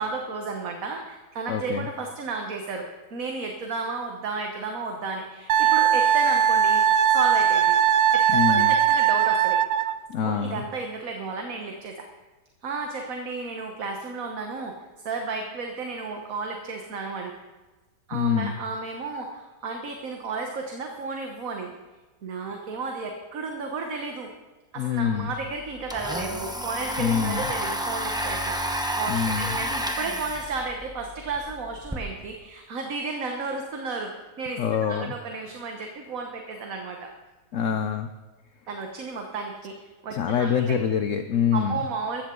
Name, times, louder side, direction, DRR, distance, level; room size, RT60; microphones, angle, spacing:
voice 1, 0.0-6.8 7.1-7.8 8.1-9.6 10.2-12.1 12.6-17.3 18.1-21.7 22.2-24.3 24.7-37.1 38.7-40.7 41.5-42.2, right 4 dB, 55° right, 3 dB, 1.5 m, -33 dB
voice 2, 1.5-1.9 8.3-8.7 10.1-10.6 18.1-18.5 24.8-25.3 27.0-27.5 29.1-29.5 34.6-35.1 37.5-38.1 40.1-41.8, left 7 dB, 60° left, 9 dB, 0.9 m, -25 dB
Wind instrument woodwind instrument, 5.5-10.0, right 9 dB, 90° right, 0.5 m, -20 dB
Domestic sounds home sounds, 25.5-32.0, equal, 5° right, 0.9 m, -31 dB
15.5 x 13.5 x 3.8 m, 1.3 s
omnidirectional pair, 1.8 m